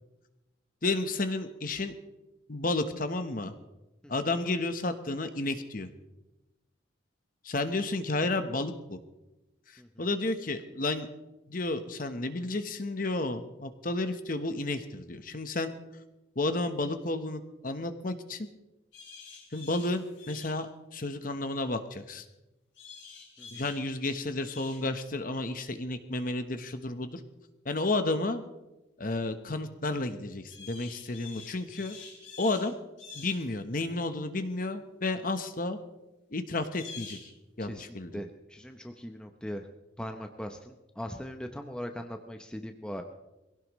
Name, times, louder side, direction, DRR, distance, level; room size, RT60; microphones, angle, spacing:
voice 1, 0.8-1.9 2.5-3.5 4.1-5.9 7.4-9.0 9.7-11.1 11.5-15.7 16.3-18.5 19.5-22.3 23.5-27.2 27.6-28.4 29.0-32.0 32.4-32.8 33.1-35.8 36.3-37.3 37.6-38.2, left 2 dB, 45° left, 9 dB, 1.1 m, -32 dB
sound 1, 18.9-20.6 22.7-23.8 24.4-24.8 30.5-32.7 33.0-33.4 36.7-37.3, left 5 dB, 75° left, 5.0 m, -47 dB
voice 2, 37.7-39.7 40.0-43.0, equal, 5° left, 5 dB, 0.8 m, -40 dB
23.0 x 16.5 x 3.1 m, 1.0 s
head